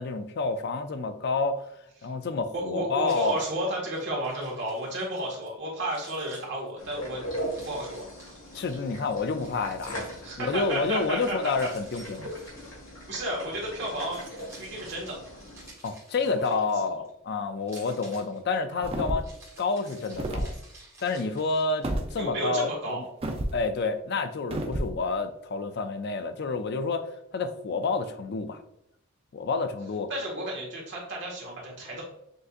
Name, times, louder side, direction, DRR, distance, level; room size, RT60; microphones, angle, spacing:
voice 1, 0.0-1.7 2.0-3.4 8.5-10.0 10.4-12.3 15.8-19.3 19.6-20.5 21.0-23.0 23.5-27.1 27.3-28.6 29.3-30.1, left 4 dB, 55° left, 9 dB, 0.4 m, -29 dB
voice 2, 2.5-7.2 7.6-8.1 10.2-11.4 12.2-12.3 13.1-14.2 14.6-15.2 16.2-16.4 18.7-18.9 22.2-23.1 30.1-32.0, right 1 dB, 60° right, -3 dB, 1.6 m, -32 dB
Keys jangling, 3.1-5.5 5.8-8.6 9.4-10.6 11.4-13.3 13.7-17.1 17.6-22.1, right 2 dB, 15° right, 1.4 m, -52 dB
sound 1, 6.8-15.7, equal, 75° left, 1.7 m, -40 dB
sound 2, 18.8-19.4 20.1-20.5 21.8-22.1 23.2-23.6 24.5-24.9, right 1 dB, 30° right, 0.5 m, -30 dB
6.4 x 2.7 x 2.5 m, 0.78 s
head